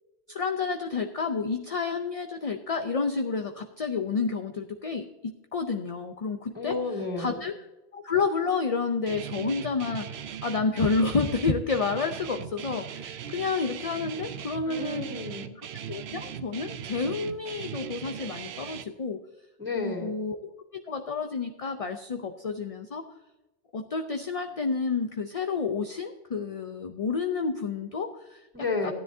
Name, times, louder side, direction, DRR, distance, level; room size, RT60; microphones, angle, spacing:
voice 1, 0.3-6.8 7.2-7.5 7.9-15.1 15.9-19.2 19.7-20.4 20.7-23.0 23.7-28.5 28.8-28.9, left 4 dB, 40° left, 6 dB, 0.6 m, -30 dB
voice 2, 6.5-7.4 14.7-15.5 19.6-20.2 28.5-28.9, left 3 dB, 10° right, -4 dB, 2.9 m, -32 dB
Guitar, 9.1-18.8, right 9 dB, 90° right, 0.9 m, -39 dB
15.5 x 10.0 x 2.7 m, 1.0 s
omnidirectional pair, 1.1 m